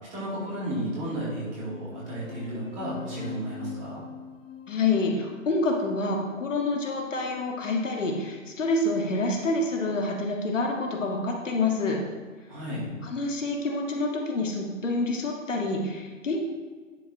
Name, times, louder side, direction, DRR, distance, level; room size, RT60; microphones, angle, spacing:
voice 1, 0.1-4.0 12.5-12.9, right 1 dB, 20° right, -7 dB, 2.3 m, -33 dB
sound 1, 1.6-6.6, left 8 dB, 30° left, 1.4 m, -42 dB
voice 2, 4.7-12.0 13.0-16.4, left 2 dB, 65° left, 1 dB, 1.7 m, -27 dB
10.5 x 4.1 x 3.7 m, 1.5 s
figure-of-eight pair, 140°, 40 cm